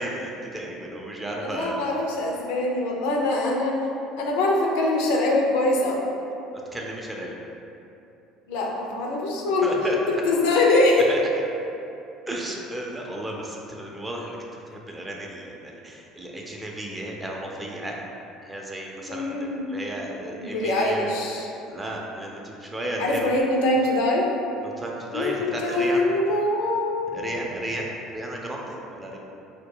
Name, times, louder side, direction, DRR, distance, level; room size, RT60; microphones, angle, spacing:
voice 1, 0.0-1.8 6.5-7.3 9.6-10.0 11.1-11.2 12.3-18.0 18.4-21.1 21.6-23.3 24.6-26.0 27.1-29.2, right 1 dB, 15° right, -1 dB, 0.4 m, -33 dB
voice 2, 1.3-3.8 4.2-6.0 8.5-10.0 10.2-11.1 19.1-19.7 20.4-21.5 23.0-24.3 25.1-27.2, left 2 dB, 80° left, -1 dB, 0.3 m, -23 dB
2.2 x 2.1 x 3.6 m, 2.8 s
hypercardioid pair, 80°, 0 cm